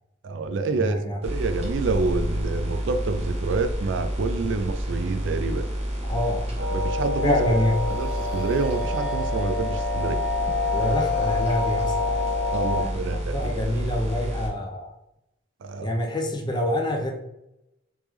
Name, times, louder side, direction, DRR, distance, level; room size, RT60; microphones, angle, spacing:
voice 1, 0.2-5.7 6.6-7.4 7.9-10.2 10.8-11.1 12.5-13.6 15.6-15.9, right 3 dB, 70° right, 9 dB, 0.4 m, -28 dB
voice 2, 0.8-1.2 6.0-6.5 7.2-7.8 10.7-12.2 12.7-15.0 15.8-17.1, left 1 dB, 20° left, 3 dB, 0.4 m, -26 dB
sound 1, 1.2-14.5, equal, 30° right, 0.9 m, -30 dB
sound 2, 6.6-12.8, left 3 dB, 60° left, 1.5 m, -27 dB
3.4 x 3.3 x 3.1 m, 0.88 s
head